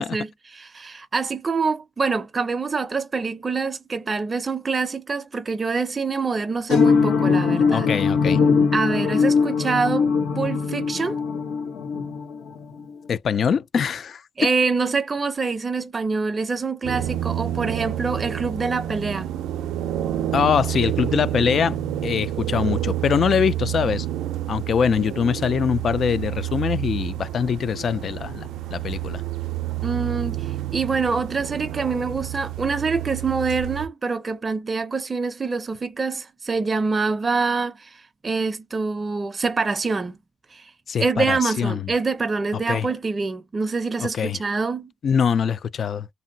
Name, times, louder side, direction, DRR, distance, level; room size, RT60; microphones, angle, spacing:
voice 1, 0.0-7.9 8.7-11.2 14.4-19.3 29.8-40.2 40.5-40.7 41.0-44.9, right 4 dB, 30° right, 0.4 m, -25 dB
sound 1, 6.7-12.9, left 5 dB, 80° left, 0.8 m, -21 dB
voice 2, 7.7-8.4 13.1-14.2 20.3-21.8 22.0-24.1 24.5-29.2 40.9-41.9 42.7-42.9 44.0-44.4 45.0-46.1, left 7 dB, 55° left, 0.3 m, -23 dB
sound 2, 16.8-33.9, right 12 dB, 85° right, 0.4 m, -29 dB
2.8 x 2.6 x 2.7 m
cardioid pair, 90°, 0 cm